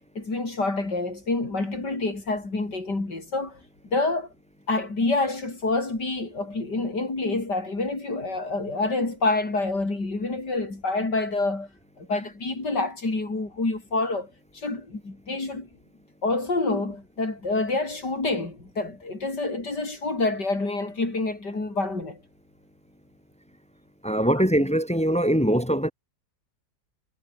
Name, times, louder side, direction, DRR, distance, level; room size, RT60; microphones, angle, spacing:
voice 1, 0.2-3.6 3.9-4.3 4.7-11.7 12.0-15.7 16.2-22.2, left 2 dB, 85° left, 6.2 m, -27 dB
voice 2, 24.0-25.9, equal, 5° left, 0.5 m, -22 dB
omnidirectional pair, 1.8 m